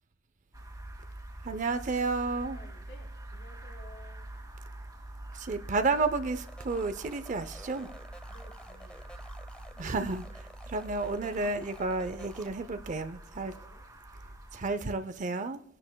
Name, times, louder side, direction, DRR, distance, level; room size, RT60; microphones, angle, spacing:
sound 1, 0.5-14.7, right 1 dB, 20° right, 1.7 m, -45 dB
voice 1, 1.4-2.6 5.3-7.9 9.8-13.5 14.5-15.6, right 3 dB, 40° right, 11 dB, 0.5 m, -31 dB
voice 2, 2.5-4.3 8.3-9.3 13.2-13.8, left 1 dB, 70° left, 1 dB, 3.5 m, -55 dB
sound 2, 6.5-12.5, equal, 5° left, 0.8 m, -51 dB
22.0 x 10.5 x 2.2 m, 0.66 s
head